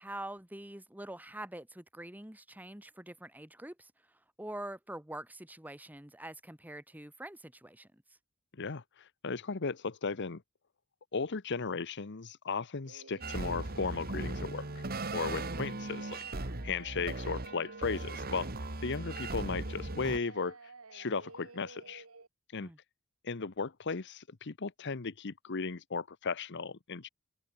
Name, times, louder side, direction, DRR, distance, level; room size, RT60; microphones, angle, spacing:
voice 1, 0.0-3.9 4.4-8.0 22.6-22.8, right 1 dB, 10° right, 1.9 m, -45 dB
voice 2, 8.6-10.4 11.1-14.8 15.1-16.2 16.6-18.5 18.8-20.6 20.9-22.0 22.5-22.7 23.2-27.1, left 4 dB, 55° left, 0.9 m, -36 dB
Singing, 12.8-22.3, right 3 dB, 75° right, 2.1 m, -52 dB
sound 1, 13.2-20.2, right 2 dB, 45° right, 1.8 m, -38 dB
open air
head